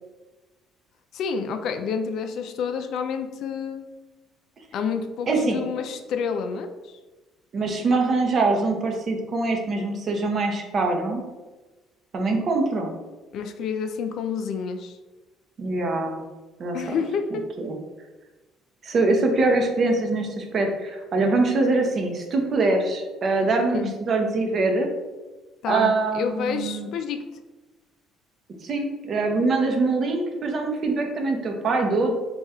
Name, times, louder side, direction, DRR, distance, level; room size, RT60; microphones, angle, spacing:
voice 1, 1.1-3.8 4.7-6.9 13.3-15.0 16.7-17.4 23.7-23.9 25.6-27.2, left 6 dB, 60° left, 7 dB, 0.4 m, -29 dB
voice 2, 5.3-5.6 7.5-11.2 12.1-12.9 15.6-16.2 16.6-16.8 17.3-17.8 18.8-24.9 25.7-26.9 28.6-32.1, right 3 dB, 45° right, 3 dB, 0.7 m, -23 dB
3.5 x 2.4 x 4.2 m, 1.2 s
cardioid pair, 120°, 0 cm